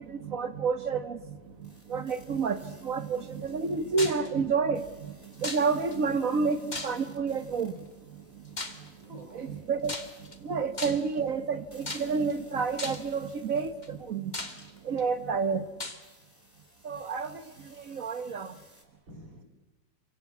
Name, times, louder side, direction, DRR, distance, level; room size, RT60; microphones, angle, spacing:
voice 1, 0.0-1.4 1.6-7.7 9.3-9.9 10.4-14.3 14.8-15.6 16.8-18.5, right 5 dB, 50° right, 12 dB, 1.4 m, -30 dB
sound 1, 1.6-18.9, equal, 5° left, 4.9 m, -60 dB
sound 2, 4.0-4.3 5.4-6.0 6.7-7.2 8.6-8.9 9.8-10.4 10.8-11.2 11.9-12.3 12.8-13.1 13.8-13.9 14.3-15.0 15.8-16.0, left 2 dB, 25° left, 2.1 m, -37 dB
voice 2, 9.0-9.6 19.1-19.5, right 1 dB, 85° right, 2 dB, 5.0 m, -50 dB
28.5 x 24.0 x 8.4 m, 1.1 s
omnidirectional pair, 2.0 m